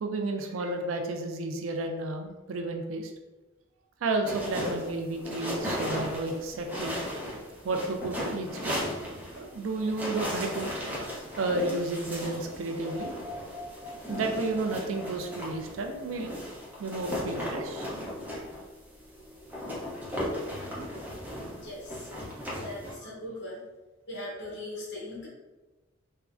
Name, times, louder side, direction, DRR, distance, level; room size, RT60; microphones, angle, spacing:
voice 1, 0.0-3.1 4.0-7.0 7.6-8.8 9.4-10.7 11.4-13.1 14.1-16.4 16.8-17.9 22.4-22.6 22.9-23.0, right 2 dB, 85° right, 4 dB, 0.4 m, -32 dB
sound 1, 4.2-22.9, equal, 10° right, 0.7 m, -36 dB
sound 2, 12.8-16.8, equal, 65° right, 1.0 m, -45 dB
voice 2, 21.6-22.1 22.6-23.6 24.1-25.3, left 1 dB, 60° left, -5 dB, 0.8 m, -39 dB
3.5 x 2.1 x 2.4 m, 1.1 s
head